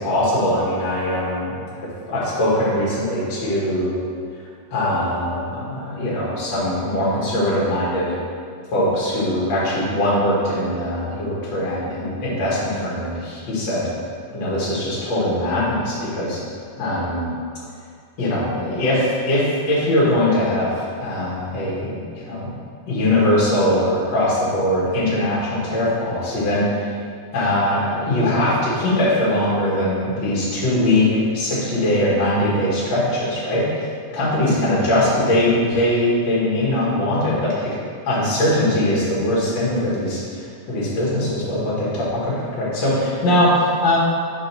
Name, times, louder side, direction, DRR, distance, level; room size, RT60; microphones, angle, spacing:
voice 1, 0.0-3.9 4.7-8.1 8.7-13.9 14.3-16.4 16.8-17.3 18.2-22.5 22.9-26.9 27.3-33.7 34.1-37.8 38.1-44.0, left 1 dB, 60° left, -7 dB, 1.2 m, -21 dB
5.0 x 4.3 x 5.9 m, 2.2 s
omnidirectional pair, 4.5 m